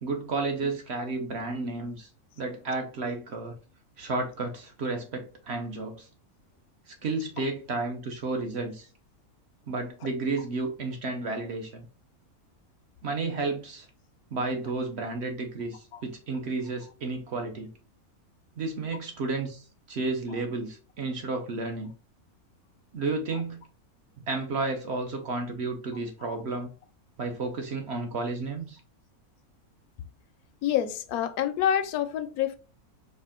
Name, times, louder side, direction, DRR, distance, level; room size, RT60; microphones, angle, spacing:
voice 1, 0.0-2.1 2.4-3.5 4.0-6.1 6.9-8.9 9.7-11.9 13.0-13.9 14.3-17.7 18.6-21.9 22.9-23.6 24.3-26.7 27.2-28.8, right 3 dB, 55° right, 0.8 m, -32 dB
voice 2, 30.6-32.6, left 10 dB, 80° left, 1.1 m, -27 dB
4.3 x 2.4 x 3.5 m
omnidirectional pair, 1.6 m